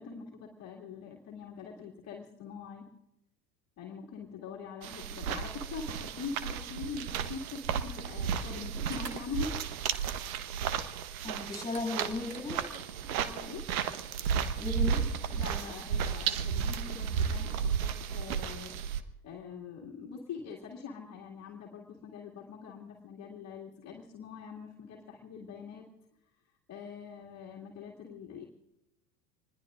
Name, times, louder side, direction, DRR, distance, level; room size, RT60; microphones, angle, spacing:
voice 1, 0.0-2.9 3.8-9.5 13.1-13.6 15.3-18.8 19.2-25.8 26.7-28.4, left 6 dB, 30° left, -2 dB, 2.3 m, -43 dB
sound 1, 4.8-19.0, right 7 dB, 60° right, 1.3 m, -33 dB
sound 2, 8.7-10.1 10.5-10.6 11.6-13.4, right 5 dB, 75° right, 2.1 m, -49 dB
voice 2, 11.2-12.7 14.6-15.8, left 3 dB, 5° left, 0 dB, 7.2 m, -37 dB
26.5 x 21.0 x 2.5 m, 0.91 s
figure-of-eight pair, 80°, 48 cm